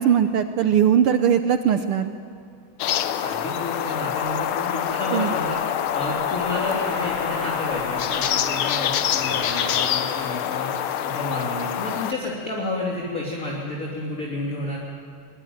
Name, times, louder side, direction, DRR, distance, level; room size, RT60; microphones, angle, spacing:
voice 1, 0.0-2.1 5.1-5.3, right 8 dB, 80° right, 9 dB, 1.2 m, -20 dB
sound 1, 2.8-12.1, left 10 dB, 80° left, 1.1 m, -26 dB
voice 2, 3.1-14.8, left 2 dB, 25° left, -3 dB, 3.0 m, -31 dB
sound 2, 3.8-10.4, right 2 dB, 60° right, 4.9 m, -38 dB
22.0 x 22.0 x 9.5 m, 2.2 s
omnidirectional pair, 3.4 m